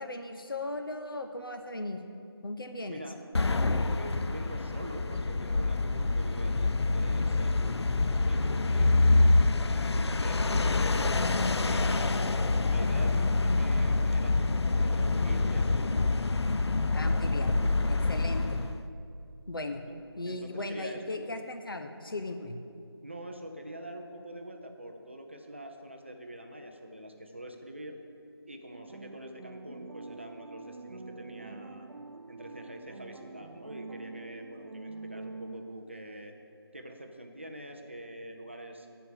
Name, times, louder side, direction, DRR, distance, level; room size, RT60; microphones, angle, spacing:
voice 1, 0.0-2.0 2.4-3.0 12.0-12.2 16.9-17.6 17.9-18.7 19.5-19.8 20.2-22.6, left 2 dB, 55° left, 6 dB, 0.9 m, -37 dB
voice 2, 2.7-3.2 3.5-9.3 9.6-11.1 11.7-15.9 18.2-18.3 19.8-19.9 20.2-21.3 23.0-28.0 28.5-31.9 32.3-36.3 36.7-38.9, right 1 dB, 30° right, 4 dB, 0.6 m, -45 dB
sound 1, 3.3-18.8, left 3 dB, 80° left, 0.5 m, -26 dB
sound 2, 28.7-36.0, right 3 dB, 80° right, 0.5 m, -45 dB
11.5 x 4.7 x 7.4 m, 2.5 s
figure-of-eight pair, 175°, 14 cm